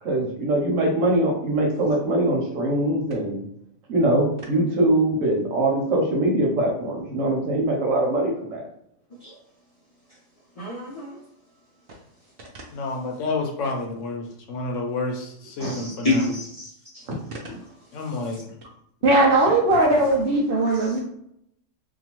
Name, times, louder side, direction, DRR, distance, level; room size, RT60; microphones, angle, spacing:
voice 1, 0.0-3.4 3.9-8.6 15.6-15.7 17.1-17.2, right 1 dB, 90° right, -1 dB, 1.2 m, -22 dB
voice 2, 10.6-11.2 15.6-16.7 16.9-17.0, left 2 dB, 45° left, -5 dB, 0.5 m, -27 dB
voice 3, 12.7-16.3 17.9-18.5, left 2 dB, 75° left, 2 dB, 1.0 m, -29 dB
voice 4, 19.0-21.0, right 2 dB, 60° right, 0 dB, 0.6 m, -19 dB
2.7 x 2.3 x 2.9 m, 0.73 s
omnidirectional pair, 1.3 m